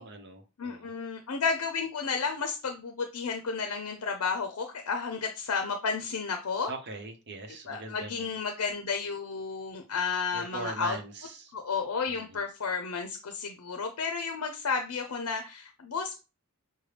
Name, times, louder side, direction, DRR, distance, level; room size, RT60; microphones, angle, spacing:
voice 1, 0.0-0.9 6.7-8.3 10.3-11.5 12.1-12.4, right 3 dB, 50° right, 5 dB, 0.9 m, -41 dB
voice 2, 0.6-6.7 7.7-11.0 11.5-16.2, left 5 dB, 75° left, 5 dB, 0.6 m, -32 dB
6.3 x 2.2 x 3.3 m, 0.30 s
head